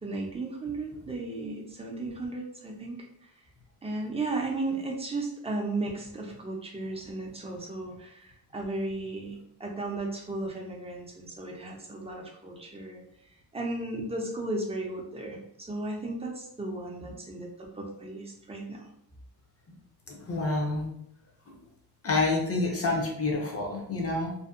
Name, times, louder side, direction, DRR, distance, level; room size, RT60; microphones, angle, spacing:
voice 1, 0.0-3.3 3.8-13.0 13.5-18.9, right 2 dB, 15° right, 0 dB, 0.4 m, -35 dB
voice 2, 20.1-20.9 21.5-21.6 22.0-24.4, left 3 dB, 35° left, 0 dB, 0.6 m, -28 dB
2.6 x 2.1 x 2.4 m, 0.73 s
wide cardioid pair, 150°, 40 cm